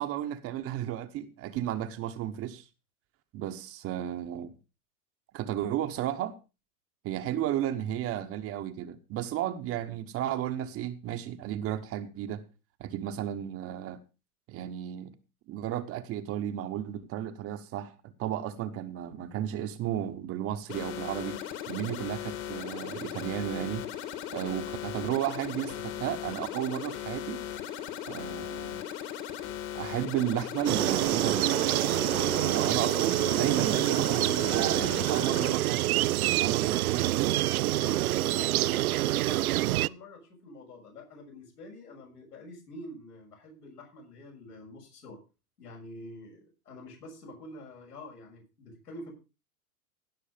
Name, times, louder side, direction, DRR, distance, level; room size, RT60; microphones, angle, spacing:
voice 1, 0.0-2.6 3.3-4.6 5.3-6.3 7.0-12.4 12.8-14.0 14.5-15.1 15.5-21.4 21.7-23.9 24.3-27.4 28.1-28.8 29.7-31.6 32.5-37.4, right 11 dB, 30° right, 1.0 m, -33 dB
sound 1, 20.7-35.6, left 11 dB, 45° left, 2.4 m, -38 dB
sound 2, 30.7-39.9, right 16 dB, 70° right, 0.5 m, -26 dB
voice 2, 37.7-45.2 45.6-49.1, left 1 dB, 80° left, 6.8 m, -47 dB
16.5 x 6.4 x 5.1 m
hypercardioid pair, 110°, 46 cm